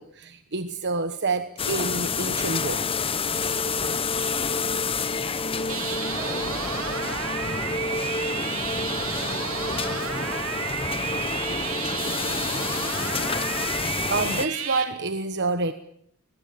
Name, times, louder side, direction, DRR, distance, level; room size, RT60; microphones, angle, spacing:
voice 1, 0.0-2.9 14.1-15.7, right 3 dB, 50° right, 10 dB, 1.2 m, -28 dB
sound 1, 1.6-14.5, left 4 dB, 25° left, 1.1 m, -28 dB
sound 2, 5.7-14.8, right 7 dB, 70° right, 3.6 m, -32 dB
voice 2, 6.2-13.0, right 1 dB, 20° right, 6 dB, 6.3 m, -46 dB
22.0 x 21.0 x 8.9 m, 0.70 s
head